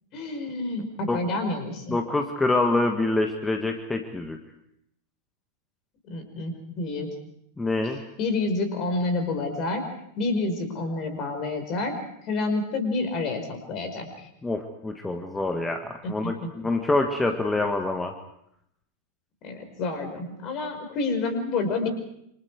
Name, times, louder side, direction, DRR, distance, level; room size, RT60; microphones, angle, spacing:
voice 1, 0.1-2.0 6.1-7.1 8.2-9.9 10.2-14.3 16.0-16.5 19.4-21.9, left 3 dB, 35° left, 7 dB, 5.2 m, -29 dB
voice 2, 1.9-4.4 7.6-8.0 14.4-18.1, left 2 dB, 10° left, 5 dB, 1.7 m, -26 dB
28.0 x 26.0 x 4.9 m, 0.76 s
figure-of-eight pair, 90°, 0 cm